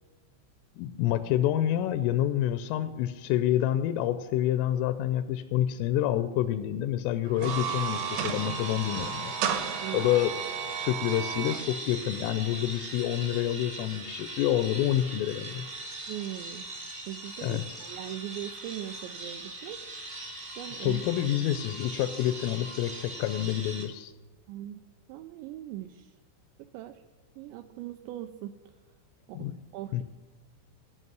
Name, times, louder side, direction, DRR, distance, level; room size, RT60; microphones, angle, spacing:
voice 1, 0.8-9.3 9.9-10.3 10.8-15.7 17.4-17.6 20.8-24.1 29.3-29.5 29.9-30.0, left 12 dB, 90° left, 10 dB, 3.2 m, -28 dB
sound 1, 7.3-11.6, right 8 dB, 75° right, 2.6 m, -33 dB
sound 2, 7.5-23.9, right 2 dB, 50° right, 0.9 m, -40 dB
voice 2, 9.8-10.1 16.1-16.7 17.1-19.9 20.6-21.0 24.5-24.8 25.1-26.2 26.6-27.0 27.4-28.6 29.3-30.0, right 13 dB, 90° right, 7 dB, 2.5 m, -40 dB
14.0 x 5.4 x 9.3 m, 1.3 s
omnidirectional pair, 5.6 m